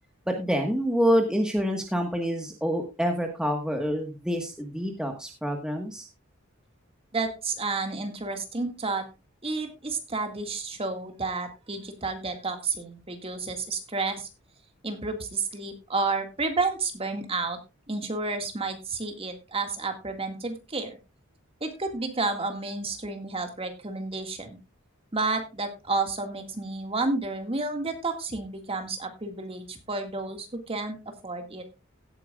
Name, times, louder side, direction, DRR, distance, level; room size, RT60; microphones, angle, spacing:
voice 1, 0.3-6.1, equal, 5° right, 2 dB, 1.4 m, -27 dB
voice 2, 7.1-9.1 9.4-14.3 14.8-17.6 17.9-21.0 21.6-24.6 25.1-31.0 31.2-31.7, right 3 dB, 30° right, 5 dB, 1.9 m, -31 dB
17.0 x 9.1 x 2.4 m, 0.26 s
head